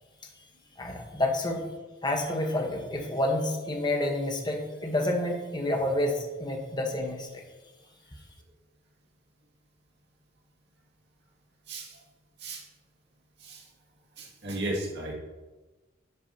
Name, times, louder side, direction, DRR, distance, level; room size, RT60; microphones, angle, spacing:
voice 1, 0.8-1.6 2.0-7.3, left 1 dB, 25° left, 2 dB, 1.1 m, -29 dB
voice 2, 11.7-12.0 12.4-12.6 13.4-13.6 14.2-15.1, right 1 dB, 65° right, -2 dB, 2.1 m, -35 dB
10.5 x 8.3 x 2.8 m, 1.2 s
head